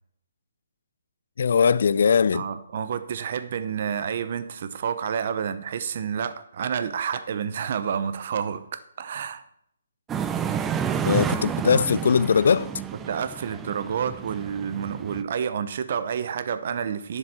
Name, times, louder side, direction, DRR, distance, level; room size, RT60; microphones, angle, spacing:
voice 1, 1.4-2.4 11.0-12.7, left 6 dB, 65° left, 0.4 m, -20 dB
voice 2, 2.3-9.4 13.1-17.2, right 7 dB, 50° right, 0.7 m, -29 dB
sound 1, 10.1-15.2, right 8 dB, 15° right, 0.4 m, -30 dB
10.5 x 7.1 x 4.4 m
hypercardioid pair, 150°, 0 cm